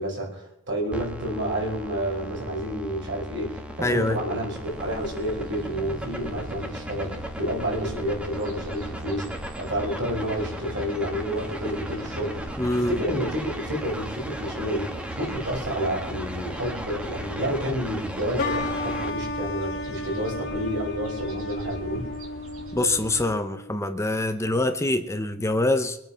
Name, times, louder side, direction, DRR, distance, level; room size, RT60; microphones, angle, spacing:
voice 1, 0.0-12.5 12.7-14.9 15.2-22.1, equal, 60° right, 5.2 m, -30 dB
sound 1, 0.9-19.1, equal, 5° right, 1.3 m, -37 dB
voice 2, 3.8-4.2 12.6-13.0 22.7-26.0, left 2 dB, 15° left, 0.8 m, -24 dB
sound 2, 4.6-23.3, right 1 dB, 85° right, 3.9 m, -41 dB
sound 3, 18.4-23.8, left 2 dB, 55° left, 2.0 m, -33 dB
23.0 x 9.0 x 5.8 m
head